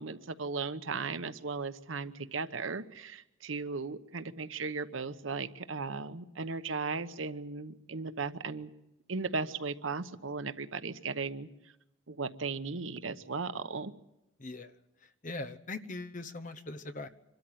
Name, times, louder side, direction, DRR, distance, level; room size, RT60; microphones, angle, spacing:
voice 1, 0.0-8.7 9.1-11.5 12.1-13.9, right 4 dB, 85° right, 12 dB, 1.0 m, -36 dB
voice 2, 14.4-14.7 15.2-17.1, left 2 dB, 40° left, 11 dB, 1.0 m, -40 dB
25.5 x 13.0 x 9.2 m, 0.91 s
head